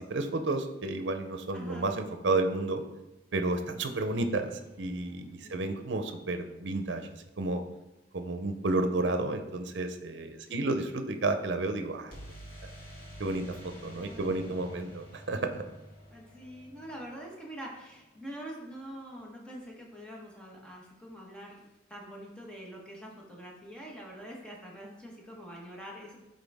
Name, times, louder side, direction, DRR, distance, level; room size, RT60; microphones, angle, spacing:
voice 1, 0.0-2.8 3.3-4.5 4.8-7.1 7.4-7.6 8.1-12.1 13.2-15.5, right 2 dB, 75° right, 7 dB, 0.7 m, -31 dB
voice 2, 1.5-1.9 5.4-5.9 10.4-10.8 14.0-14.7 16.1-26.2, equal, 5° left, -3 dB, 1.3 m, -45 dB
sound 1, 4.0-6.0 12.1-17.9, equal, 55° left, 2.3 m, -49 dB
9.3 x 3.9 x 3.5 m, 1.0 s
head